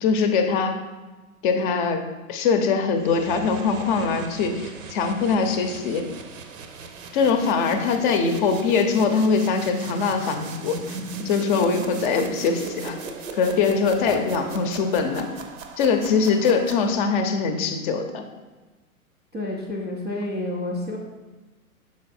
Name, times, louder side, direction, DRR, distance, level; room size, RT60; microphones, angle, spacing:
voice 1, 0.0-0.8 1.4-6.1 7.1-11.0 11.2-13.0 13.3-15.3 15.8-18.2, left 5 dB, 35° left, 6 dB, 0.7 m, -22 dB
sound 1, 3.0-17.3, right 4 dB, 60° right, 0.8 m, -38 dB
voice 2, 19.3-21.0, left 1 dB, 10° right, -8 dB, 0.3 m, -30 dB
6.3 x 3.9 x 4.2 m, 1.2 s
hypercardioid pair, 110°, 44 cm